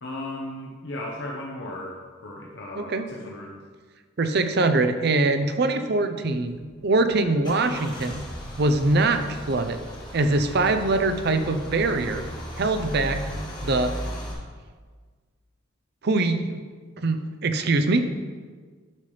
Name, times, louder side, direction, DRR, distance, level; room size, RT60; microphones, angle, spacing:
voice 1, 0.0-3.6, left 1 dB, 60° left, -2 dB, 0.8 m, -36 dB
voice 2, 4.2-8.2 8.6-9.8 10.1-12.2 12.6-13.2 13.6-13.9 16.0-16.6 17.0-18.1, right 2 dB, 55° right, 8 dB, 0.6 m, -23 dB
Car / Engine starting / Idling, 6.5-14.3, equal, 20° left, 1.5 m, -36 dB
10.5 x 5.7 x 3.3 m, 1.5 s
head